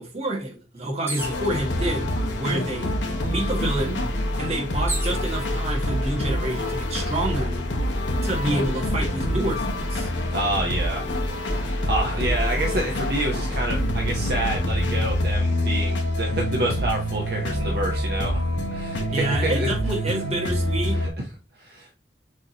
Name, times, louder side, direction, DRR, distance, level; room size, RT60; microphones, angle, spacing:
voice 1, 0.0-2.1 2.4-2.9 3.3-4.0 4.4-7.6 8.2-10.1 19.1-21.0, right 1 dB, 35° right, 1.4 m, -28 dB
sound 1, 1.1-1.5 2.4-2.5 2.8-5.2 6.0-6.5, right 2 dB, 15° right, 0.8 m, -35 dB
sound 2, 1.2-21.1, left 1 dB, 90° left, 0.9 m, -26 dB
voice 2, 10.3-11.0 11.6-19.7 21.0-21.1 21.6-21.9, right 1 dB, 60° right, 0.7 m, -28 dB
6.3 x 2.7 x 2.8 m
head